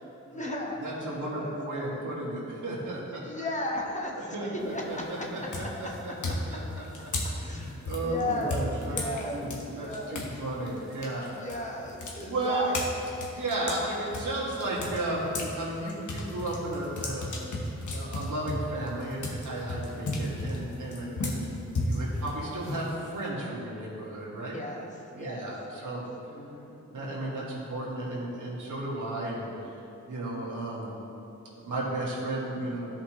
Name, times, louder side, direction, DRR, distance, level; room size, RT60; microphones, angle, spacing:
voice 1, 0.2-0.8 1.3-1.8 3.2-5.2 6.0-6.1 7.4-10.2 11.3-13.1 19.9-20.0 24.5-27.5, left 1 dB, 25° left, -1 dB, 1.1 m, -36 dB
voice 2, 0.8-3.5 4.1-6.8 7.4-9.0 9.3-11.3 12.3-12.7 13.3-17.3 17.7-24.6 25.1-26.0 26.9-29.7 30.1-30.9 31.6-33.0, right 2 dB, 85° right, -5 dB, 1.8 m, -34 dB
sound 1, 4.6-5.0 5.5-10.3 10.7-15.5 15.9-23.3, left 2 dB, 75° left, 1.1 m, -34 dB
13.5 x 5.2 x 3.1 m, 2.9 s
wide cardioid pair, 90°, 30 cm